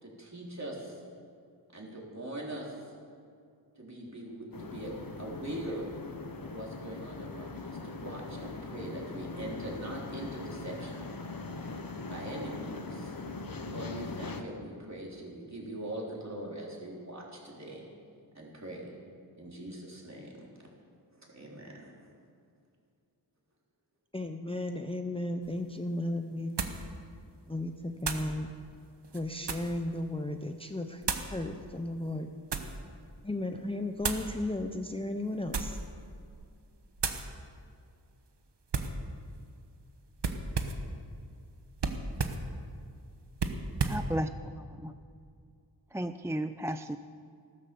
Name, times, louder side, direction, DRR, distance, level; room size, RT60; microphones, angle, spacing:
voice 1, 0.0-1.0 1.7-2.7 3.8-5.9 6.4-11.0 12.1-13.2 13.6-17.8 18.3-18.9 19.4-20.5 21.2-21.9, right 1 dB, 40° right, -3 dB, 4.0 m, -42 dB
sound 1, 4.5-14.4, left 3 dB, 50° left, 1.2 m, -41 dB
voice 2, 24.1-26.7 27.4-28.5 29.1-32.3 33.2-35.8, left 1 dB, 15° left, 5 dB, 0.7 m, -35 dB
sound 2, 25.4-25.5 26.6-26.9 28.0-28.3 29.0-29.8 31.0-31.3 32.1-32.8 34.0-34.3 35.4-35.9 36.3-36.6 37.0-37.3 38.7-39.0 40.2-40.9 41.8-42.5 43.4-44.1, right 4 dB, 70° right, 1.2 m, -33 dB
voice 3, 43.8-44.9 45.9-47.0, right 1 dB, 5° right, 10 dB, 0.3 m, -34 dB
15.0 x 12.5 x 7.0 m, 2.3 s
wide cardioid pair, 85°, 44 cm